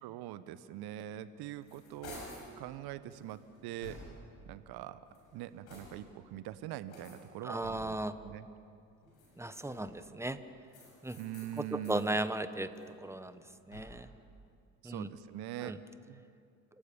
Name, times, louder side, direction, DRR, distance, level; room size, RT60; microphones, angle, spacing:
voice 1, 0.0-2.2 2.6-4.0 4.5-5.0 5.3-8.0 8.2-8.5 11.2-12.2 14.8-16.2, right 12 dB, 60° right, 14 dB, 1.2 m, -43 dB
sound 1, 1.2-2.5 3.1-4.4 5.0-6.2 6.9-8.1 9.0-10.1 10.7-12.1 12.5-14.2, left 1 dB, 80° left, 7.0 m, -52 dB
voice 2, 7.4-8.2 9.4-10.4 11.0-11.2 11.5-12.7 13.0-13.4 13.7-14.1 14.8-15.1 15.6-15.8, right 1 dB, 5° right, 11 dB, 1.4 m, -36 dB
29.0 x 18.5 x 7.1 m, 2.4 s
hypercardioid pair, 55°, 42 cm